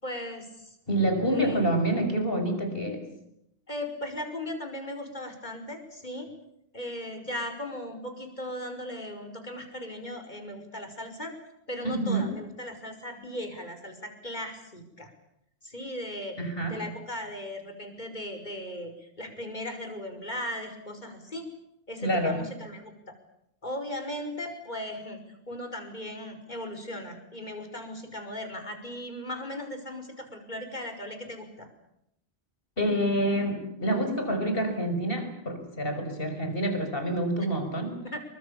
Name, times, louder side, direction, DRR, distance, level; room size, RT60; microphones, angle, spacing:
voice 1, 0.0-0.8 1.3-1.7 3.7-6.3 6.7-11.3 11.7-15.1 15.6-16.4 16.7-21.5 21.9-22.9 23.6-25.2 25.5-31.7 38.0-38.2, left 1 dB, 45° left, 6 dB, 5.7 m, -37 dB
voice 2, 0.9-3.0 11.8-12.3 16.4-16.8 22.0-22.4 32.8-38.0, right 1 dB, 60° left, 6 dB, 6.2 m, -27 dB
28.5 x 24.5 x 7.2 m, 0.79 s
omnidirectional pair, 1.1 m